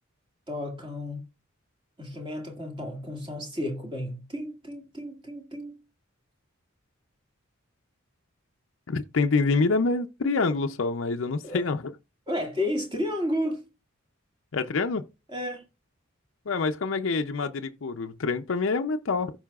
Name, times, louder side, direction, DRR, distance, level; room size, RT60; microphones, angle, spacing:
voice 1, 0.5-1.2 2.0-5.8 11.4-11.7 12.3-13.6 15.3-15.7, left 1 dB, 20° right, 2.0 m, -32 dB
voice 2, 8.9-11.9 14.5-15.0 16.5-19.3, left 3 dB, 60° left, 0.5 m, -26 dB
15.0 x 5.5 x 2.4 m
head